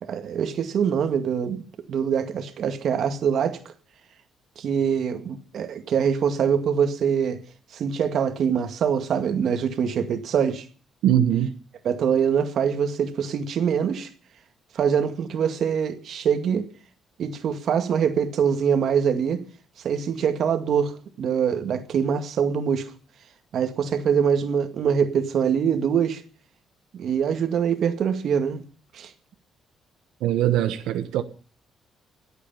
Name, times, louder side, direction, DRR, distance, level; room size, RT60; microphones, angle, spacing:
voice 1, 0.0-3.6 4.6-7.4 7.7-10.7 11.8-14.1 14.7-16.7 17.2-19.4 19.8-22.9 23.5-26.2 26.9-28.6 28.9-29.1, right 7 dB, 65° right, 2.0 m, -24 dB
voice 2, 11.0-11.5 30.2-31.2, right 11 dB, 90° right, 1.1 m, -21 dB
25.0 x 8.5 x 5.7 m
cardioid pair, 90°, 0 cm